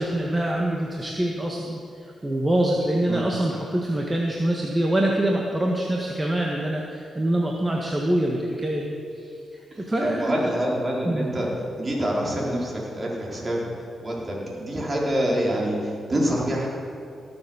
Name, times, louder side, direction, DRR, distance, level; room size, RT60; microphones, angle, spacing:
voice 1, 0.0-1.8 2.2-8.9 9.9-10.5 11.0-11.3, right 1 dB, 20° right, -1 dB, 1.6 m, -24 dB
voice 2, 9.7-11.5 11.8-13.7 14.0-16.7, equal, 35° right, -3 dB, 4.2 m, -26 dB
17.0 x 7.4 x 7.1 m, 2.5 s
cardioid pair, 65°, 0 cm